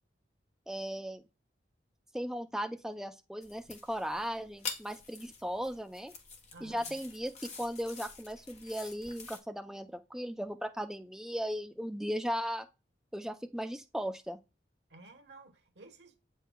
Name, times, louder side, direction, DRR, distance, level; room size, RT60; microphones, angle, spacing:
voice 1, 0.7-1.2 2.1-6.1 6.6-12.7 13.1-14.4, equal, 5° right, 0.6 m, -37 dB
sound 1, 3.4-9.4, left 5 dB, 40° left, 1.2 m, -46 dB
voice 2, 6.5-7.0 14.9-16.2, right 2 dB, 75° right, 1.3 m, -53 dB
8.2 x 5.6 x 2.3 m
head